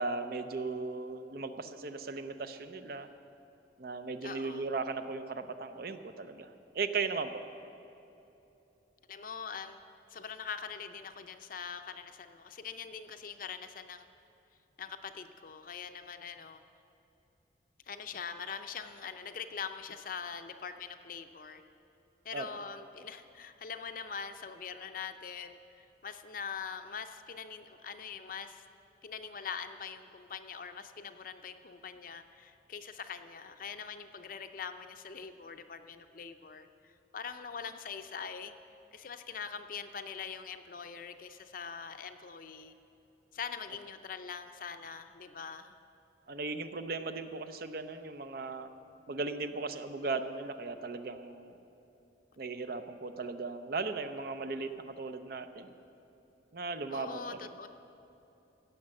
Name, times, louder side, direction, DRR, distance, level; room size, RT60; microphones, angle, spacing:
voice 1, 0.0-3.1 3.8-7.4 22.3-22.5 46.3-48.7 49.1-51.6 52.4-55.7 56.5-57.4, right 4 dB, 55° right, 9 dB, 0.6 m, -37 dB
voice 2, 4.2-4.7 9.1-9.8 10.1-14.1 14.8-16.6 17.9-21.6 22.2-28.6 29.0-38.5 38.9-42.7 43.3-45.7 56.9-57.7, left 6 dB, 50° left, 8 dB, 0.5 m, -43 dB
15.5 x 6.6 x 7.6 m, 3.0 s
head